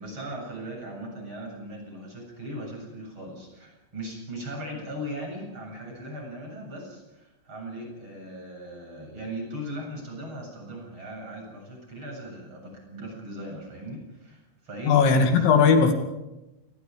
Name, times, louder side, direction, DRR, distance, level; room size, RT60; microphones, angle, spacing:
voice 1, 0.0-15.3, right 1 dB, 25° right, 0 dB, 8.4 m, -38 dB
voice 2, 14.9-15.9, left 5 dB, 75° left, 6 dB, 4.7 m, -18 dB
28.0 x 23.0 x 5.2 m, 1.0 s
omnidirectional pair, 5.3 m